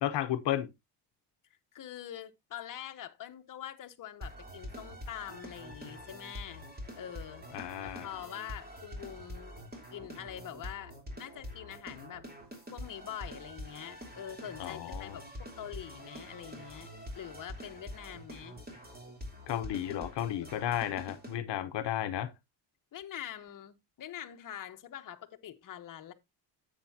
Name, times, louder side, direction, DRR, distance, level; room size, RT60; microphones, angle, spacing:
voice 1, 0.0-0.7 7.5-8.1 14.6-15.2 19.5-22.3, left 11 dB, 70° left, 0.9 m, -33 dB
voice 2, 1.7-6.6 7.0-12.2 12.7-18.6 19.9-20.0 20.4-20.5 22.9-26.1, left 10 dB, 50° left, 1.0 m, -45 dB
sound 1, 4.2-21.3, equal, 20° right, 3.3 m, -46 dB
10.5 x 8.2 x 2.7 m
cardioid pair, 115°, 43 cm